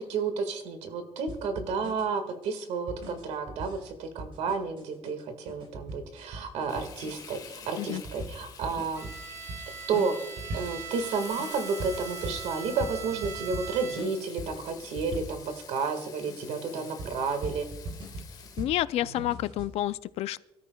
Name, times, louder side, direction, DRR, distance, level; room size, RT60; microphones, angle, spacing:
voice 1, 0.0-9.1 9.9-10.2 10.5-17.7, right 4 dB, 80° right, 8 dB, 1.8 m, -31 dB
sound 1, 1.3-15.8 16.3-19.7, right 1 dB, 55° right, 3.7 m, -41 dB
Frying (food), 6.7-18.6, left 6 dB, 35° left, 1.4 m, -48 dB
Bowed string instrument, 8.9-14.4, right 9 dB, 25° right, 1.5 m, -42 dB
voice 2, 18.6-20.4, left 14 dB, 70° left, 16 dB, 0.4 m, -29 dB
24.5 x 13.5 x 2.3 m, 1.1 s
cardioid pair, 165°, 11 cm